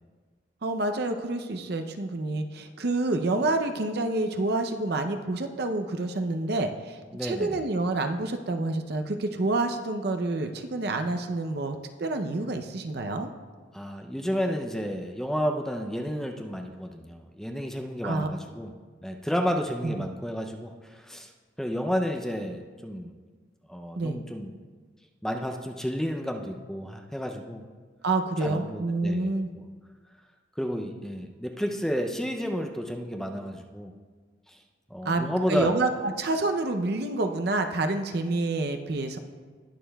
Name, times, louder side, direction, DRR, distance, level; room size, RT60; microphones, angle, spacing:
voice 1, 0.6-13.3 18.0-18.3 19.8-20.1 24.0-24.2 28.0-29.5 35.0-39.2, right 2 dB, 55° right, 6 dB, 0.6 m, -28 dB
voice 2, 7.1-7.6 13.7-18.7 19.0-21.3 21.6-23.1 23.7-24.5 25.2-27.6 28.4-29.7 30.6-33.9 34.5-34.6 34.9-35.7, equal, 5° left, 3 dB, 0.4 m, -31 dB
19.5 x 6.6 x 2.3 m, 1.5 s
head